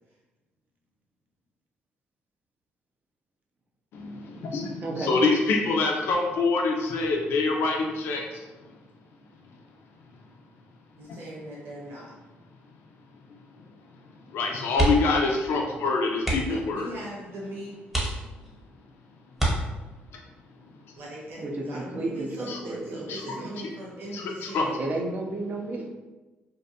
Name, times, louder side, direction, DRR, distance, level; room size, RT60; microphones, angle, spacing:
voice 1, 3.9-8.5 11.1-11.2 14.3-16.9 22.5-22.6 23.1-23.4 24.1-24.6, left 3 dB, 75° left, 1 dB, 0.4 m, -26 dB
voice 2, 4.8-5.2 21.4-23.6 24.8-25.9, right 2 dB, 45° right, 1 dB, 0.5 m, -33 dB
voice 3, 11.0-12.1 16.5-17.8 21.0-24.8, right 1 dB, 70° right, -5 dB, 0.8 m, -39 dB
sound 1, 14.7-15.2 15.5-15.7 16.2-16.7 17.3-17.4 17.9-18.6 19.3-20.1 21.7-22.0 22.4-22.5, right 1 dB, 5° right, 0.9 m, -27 dB
2.6 x 2.2 x 2.6 m, 1.2 s
cardioid pair, 85°, 4 cm